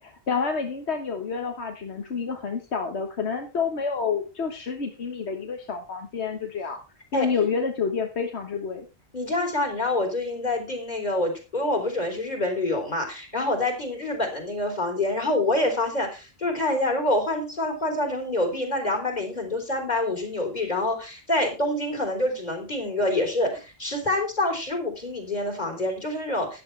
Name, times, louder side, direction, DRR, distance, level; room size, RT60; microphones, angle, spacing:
voice 1, 0.0-6.8 7.1-8.9, left 5 dB, 90° left, 4 dB, 1.6 m, -28 dB
voice 2, 9.1-26.6, left 1 dB, 40° left, 4 dB, 3.9 m, -26 dB
13.5 x 11.0 x 3.3 m, 0.29 s
omnidirectional pair, 1.1 m